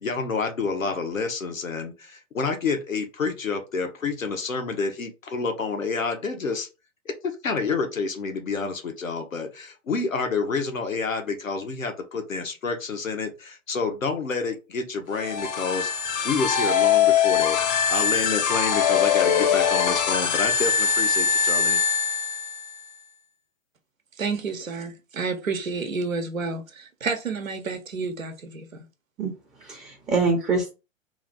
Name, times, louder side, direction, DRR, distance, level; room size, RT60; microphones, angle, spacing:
voice 1, 0.0-6.7 7.2-21.8, left 4 dB, 85° left, 0.9 m, -29 dB
sound 1, 15.1-22.8, left 7 dB, 35° left, 0.6 m, -22 dB
voice 2, 24.2-28.8, right 4 dB, 85° right, 0.8 m, -30 dB
voice 3, 29.2-30.7, right 4 dB, 10° right, 0.5 m, -25 dB
3.1 x 2.5 x 3.8 m
figure-of-eight pair, 110°, 39 cm